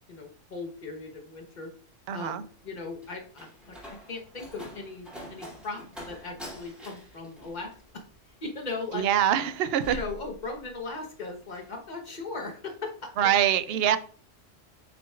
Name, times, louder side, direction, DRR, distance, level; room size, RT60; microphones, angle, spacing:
voice 1, 0.1-1.7 2.1-3.8 4.1-8.0 8.4-9.1 9.9-13.4 13.7-14.0, left 3 dB, 40° left, 1.2 m, -38 dB
voice 2, 2.1-2.4 8.9-10.0 13.2-14.0, right 10 dB, 65° right, 0.7 m, -24 dB
Slam, 2.5-11.0 11.3-11.7, equal, ahead, 2.6 m, -45 dB
7.9 x 6.0 x 2.4 m
omnidirectional pair, 1.3 m